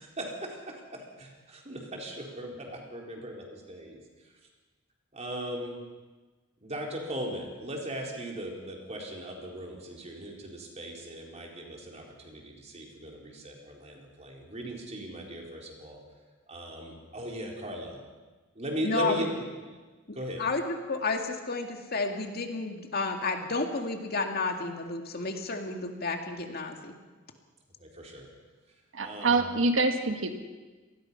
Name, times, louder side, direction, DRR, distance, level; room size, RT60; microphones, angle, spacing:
voice 1, 0.0-4.0 5.1-5.8 6.6-16.0 16.5-18.0 18.6-19.3 20.1-20.4 27.8-28.3 29.0-29.4, right 1 dB, 35° right, 0 dB, 4.2 m, -38 dB
voice 2, 18.8-19.3 20.1-26.9, left 3 dB, 50° left, 4 dB, 2.2 m, -31 dB
voice 3, 28.9-30.3, right 3 dB, 75° right, 6 dB, 1.6 m, -26 dB
26.0 x 19.5 x 5.8 m, 1.3 s
head